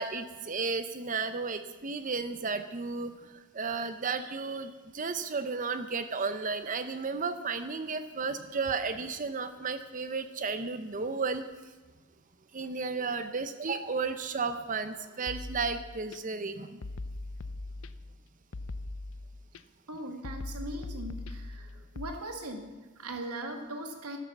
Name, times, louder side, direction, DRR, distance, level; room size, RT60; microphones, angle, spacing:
voice 1, 0.0-11.4 12.5-16.8, right 4 dB, 35° right, 10 dB, 0.7 m, -33 dB
sound 1, 15.3-16.2 16.8-18.2 18.5-19.6 20.2-22.1, left 2 dB, 60° left, 0.6 m, -40 dB
voice 2, 19.9-24.2, right 1 dB, 85° right, 5 dB, 1.8 m, -40 dB
12.5 x 12.0 x 7.2 m, 1.3 s
head